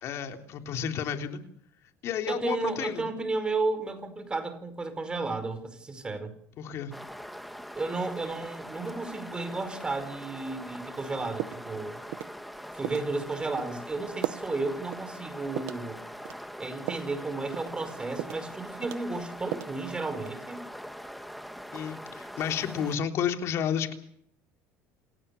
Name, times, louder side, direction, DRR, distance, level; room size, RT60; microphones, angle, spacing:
voice 1, 0.0-1.4 2.0-3.1 6.6-6.9 21.7-23.9, left 8 dB, 50° left, 5 dB, 3.6 m, -31 dB
voice 2, 2.3-6.3 7.7-12.0 12.7-16.0 16.6-20.6, right 3 dB, 15° right, 10 dB, 5.1 m, -33 dB
sound 1, 6.9-23.0, equal, ahead, 1.8 m, -42 dB
sound 2, 11.0-11.1 11.4-11.8 12.1-12.4 12.8-13.1 13.6-13.7 14.2-14.5 14.9-15.1 15.6-15.9 16.2-17.1 17.5-17.8 18.2-18.5 18.8-19.8 20.1-20.5, right 17 dB, 80° right, 1.0 m, -36 dB
28.5 x 18.0 x 7.1 m, 0.66 s
cardioid pair, 140°, 6 cm